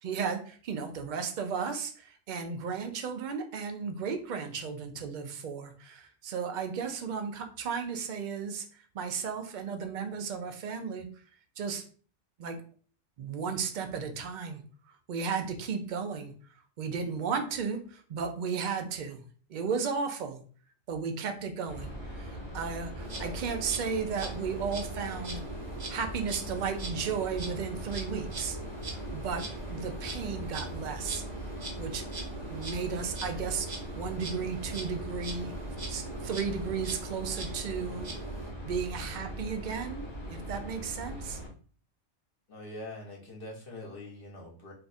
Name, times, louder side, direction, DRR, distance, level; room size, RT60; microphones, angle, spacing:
voice 1, 0.0-11.2 11.6-11.8 12.4-12.6 13.2-14.6 14.9-16.3 16.8-20.4 20.9-25.4 25.9-28.6 28.9-29.4 29.7-31.2 31.8-32.1 32.5-33.7 34.0-35.5 35.9-38.1 38.6-41.4, right 6 dB, 75° right, 6 dB, 0.4 m, -34 dB
sound 1, 21.7-41.5, equal, 30° left, 0.6 m, -40 dB
Insect, 23.0-38.5, right 2 dB, 40° right, 0.7 m, -42 dB
voice 2, 42.5-44.7, left 1 dB, 50° left, -1 dB, 0.9 m, -43 dB
2.6 x 2.3 x 4.0 m, 0.42 s
omnidirectional pair, 1.3 m